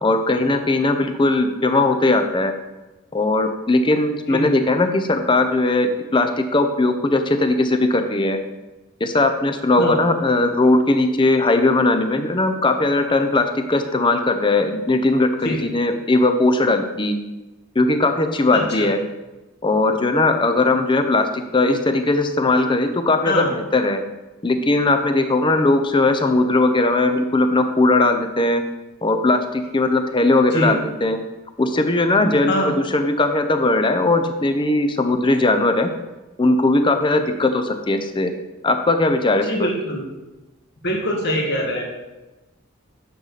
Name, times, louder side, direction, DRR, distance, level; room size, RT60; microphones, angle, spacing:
voice 1, 0.0-2.5 3.1-8.4 9.0-17.1 17.8-19.0 19.6-24.0 24.4-28.6 29.0-31.2 31.6-35.9 36.4-38.3 38.6-39.7, left 2 dB, 25° left, 7 dB, 0.6 m, -19 dB
voice 2, 18.5-18.9 23.2-23.5 30.5-30.7 32.5-32.7 39.4-40.0 40.8-41.8, equal, 55° left, -1 dB, 1.8 m, -23 dB
9.3 x 6.5 x 4.1 m, 1.1 s
head